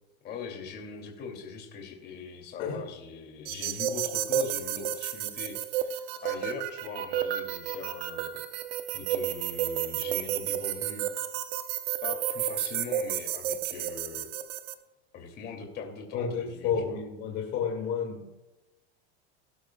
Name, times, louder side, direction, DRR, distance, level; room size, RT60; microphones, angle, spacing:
voice 1, 0.2-8.4 8.9-11.1 12.0-14.3 15.1-17.0, left 5 dB, 30° left, 2 dB, 2.8 m, -41 dB
sound 1, 3.5-14.7, right 10 dB, 70° right, 1.1 m, -32 dB
voice 2, 16.1-18.3, left 6 dB, 50° left, 0 dB, 2.4 m, -31 dB
18.0 x 12.0 x 2.4 m, 1.0 s
supercardioid pair, 160°, 31 cm